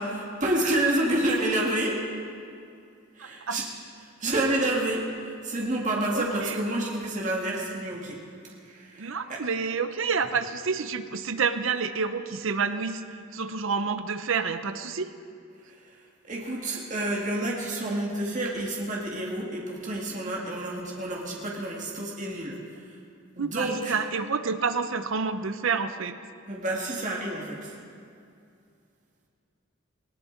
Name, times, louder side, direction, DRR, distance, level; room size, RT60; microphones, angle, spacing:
voice 1, 0.0-2.0 3.1-3.7 4.0-8.2 8.6-9.4 15.6-23.0 23.4-24.0 26.5-27.8, right 1 dB, 35° right, -2 dB, 1.8 m, -29 dB
voice 2, 3.2-3.6 6.1-6.6 9.0-13.0 13.3-15.1 23.4-26.2, right 5 dB, 65° right, 10 dB, 0.8 m, -29 dB
19.0 x 18.5 x 3.9 m, 2.4 s
head